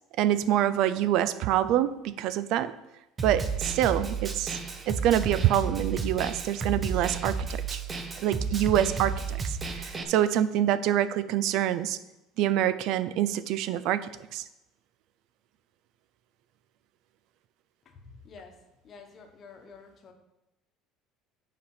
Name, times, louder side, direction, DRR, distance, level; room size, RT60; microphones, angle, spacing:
voice 1, 0.2-2.7 3.2-4.5 4.9-7.8 8.2-12.0 12.4-14.4, right 11 dB, 60° right, 15 dB, 0.4 m, -26 dB
Snare drum, 3.2-10.0, right 4 dB, 20° right, 0.8 m, -32 dB
voice 2, 18.2-18.5 18.8-20.1, left 5 dB, 30° left, 5 dB, 1.1 m, -49 dB
8.6 x 5.0 x 5.6 m, 0.92 s
cardioid pair, 165°, 0 cm